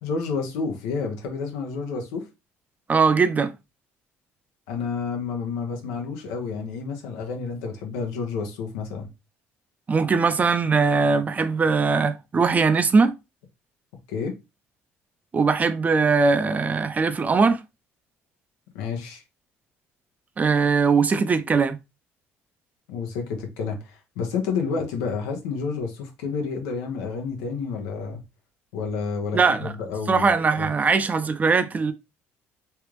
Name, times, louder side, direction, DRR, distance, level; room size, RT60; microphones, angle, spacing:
voice 1, 0.0-2.3 4.7-9.1 14.1-14.3 18.7-19.2 22.9-28.2 28.7-30.3 30.6-30.7, left 5 dB, 90° left, 0.8 m, -30 dB
voice 2, 2.9-3.5 9.9-13.1 15.3-17.6 20.4-21.8 29.3-29.7 30.1-31.9, right 4 dB, 30° right, 0.5 m, -20 dB
3.3 x 2.4 x 3.1 m
supercardioid pair, 85°, 5 cm